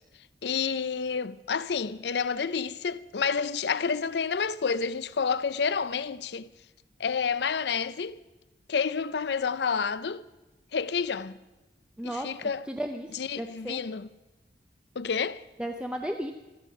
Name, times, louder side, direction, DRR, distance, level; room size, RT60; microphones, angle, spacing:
voice 1, 0.4-6.5 7.0-8.2 8.7-10.3 10.7-11.4 12.0-12.7 13.1-14.1 15.0-15.4, left 6 dB, 70° left, 0.5 m, -29 dB
voice 2, 12.0-12.3 12.7-13.8 15.6-16.3, right 1 dB, 5° right, 0.6 m, -34 dB
15.0 x 13.5 x 5.9 m
head